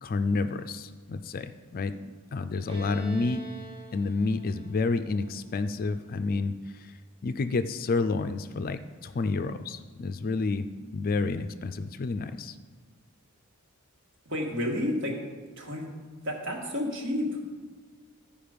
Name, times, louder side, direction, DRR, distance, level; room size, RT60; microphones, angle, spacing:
voice 1, 0.0-2.0 2.3-3.4 3.9-6.9 7.2-10.7 10.9-12.6, left 3 dB, 40° left, 10 dB, 0.4 m, -29 dB
Bowed string instrument, 2.7-6.2, right 3 dB, 25° right, 1.0 m, -47 dB
voice 2, 14.2-15.1 15.6-15.8 16.2-17.5, left 1 dB, 60° right, 0 dB, 1.7 m, -30 dB
12.5 x 5.1 x 5.1 m, 1.5 s
head